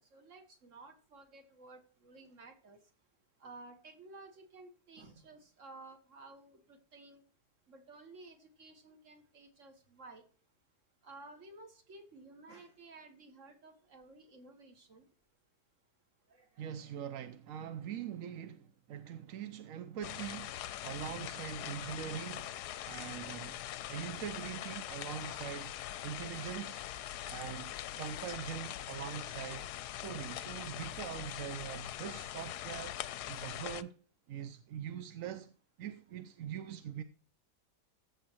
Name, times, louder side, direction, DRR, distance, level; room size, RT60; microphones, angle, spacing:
voice 1, 0.0-2.8 3.4-7.2 7.7-10.2 11.0-15.1 16.3-16.9, right 3 dB, 45° right, 1.9 m, -54 dB
voice 2, 16.6-20.6 20.8-22.6 22.8-23.6 23.9-25.7 26.0-26.8 27.3-29.7 30.0-33.0 33.3-33.9 34.3-35.5 35.8-37.0, right 9 dB, 65° right, 0.9 m, -43 dB
sound 1, 20.0-33.8, left 12 dB, 75° left, 1.1 m, -42 dB
15.0 x 6.9 x 3.0 m
omnidirectional pair, 1.8 m